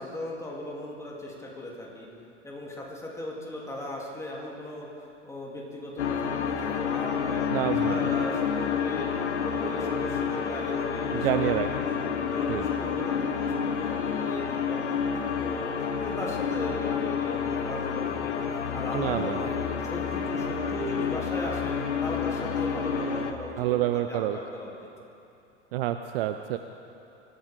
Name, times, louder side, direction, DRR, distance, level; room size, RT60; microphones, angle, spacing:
voice 1, 0.0-2.1 2.4-7.4 7.9-9.1 9.4-12.0 12.3-15.7 16.0-21.7 22.0-24.7, left 1 dB, 10° left, -3 dB, 3.1 m, -37 dB
sound 1, 6.0-23.3, left 7 dB, 70° left, 1.2 m, -29 dB
voice 2, 7.5-8.1 11.1-11.7 12.5-12.7 18.9-19.4 23.6-24.4 25.7-26.6, right 13 dB, 50° right, 9 dB, 0.7 m, -28 dB
23.5 x 13.5 x 3.8 m, 2.7 s
figure-of-eight pair, 85°, 36 cm